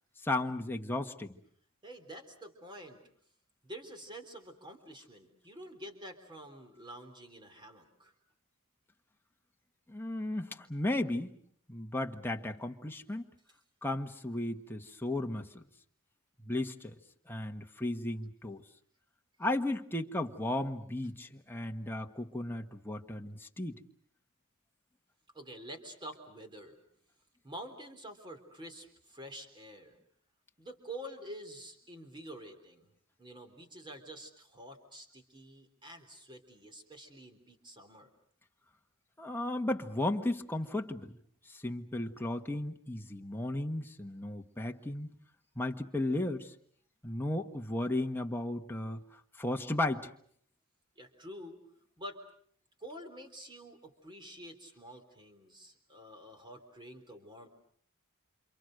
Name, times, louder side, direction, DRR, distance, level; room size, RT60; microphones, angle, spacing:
voice 1, 0.2-1.4 9.9-11.4 11.7-13.3 13.8-15.6 16.4-17.0 17.3-18.6 19.4-23.8 39.2-41.1 41.5-45.1 45.5-46.5 47.0-50.1, left 1 dB, 10° left, 3 dB, 1.4 m, -35 dB
voice 2, 1.8-3.0 3.6-8.1 25.3-26.8 27.4-30.0 30.6-32.9 33.2-38.1 51.0-51.6 52.0-52.2 52.8-57.5, right 1 dB, 20° right, 6 dB, 3.6 m, -48 dB
28.5 x 27.5 x 6.5 m, 0.63 s
head